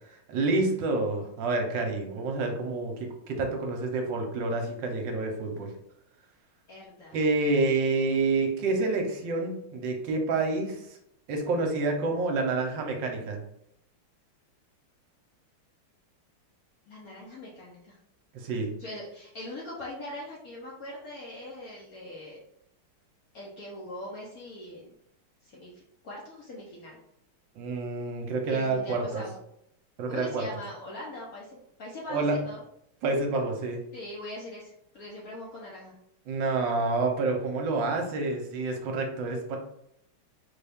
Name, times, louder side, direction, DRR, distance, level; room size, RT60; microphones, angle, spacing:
voice 1, 0.3-2.9 3.3-5.7 7.1-11.0 11.3-13.4 18.3-18.7 27.6-29.2 30.0-30.5 32.1-32.3 33.0-33.8 36.3-39.6, right 3 dB, 70° right, 2 dB, 1.3 m, -28 dB
voice 2, 6.7-7.2 16.9-18.0 18.8-22.4 23.3-24.9 25.4-27.0 28.5-29.3 30.1-32.6 33.9-35.9, left 1 dB, 60° left, -4 dB, 1.0 m, -41 dB
4.1 x 2.3 x 3.4 m, 0.77 s
omnidirectional pair, 2.3 m